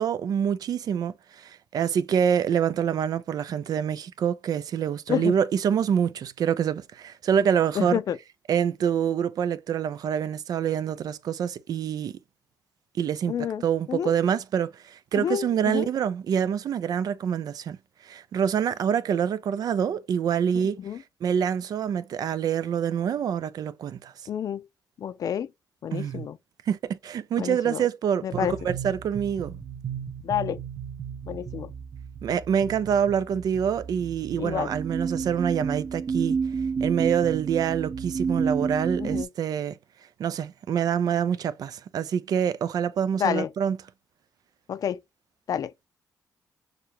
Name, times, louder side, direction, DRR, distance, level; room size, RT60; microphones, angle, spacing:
voice 1, 0.0-8.0 8.5-12.2 12.9-17.8 18.0-20.8 21.2-24.1 25.9-26.3 26.7-29.6 32.2-36.4 36.8-39.8 40.2-43.8, right 8 dB, 65° right, 0.5 m, -26 dB
voice 2, 7.8-8.2 13.3-13.6 13.9-14.1 15.1-15.9 20.8-21.0 24.3-24.7 25.0-25.5 25.8-26.4 27.4-27.8 28.2-28.5 30.2-30.6 31.3-31.7 34.4-34.7 39.0-39.3 43.2-43.5 44.7-45.0 45.5-45.7, left 9 dB, 60° left, 0.5 m, -29 dB
sound 1, 28.3-39.2, right 5 dB, 45° right, 0.9 m, -31 dB
6.6 x 2.3 x 2.9 m
cardioid pair, 95°, 7 cm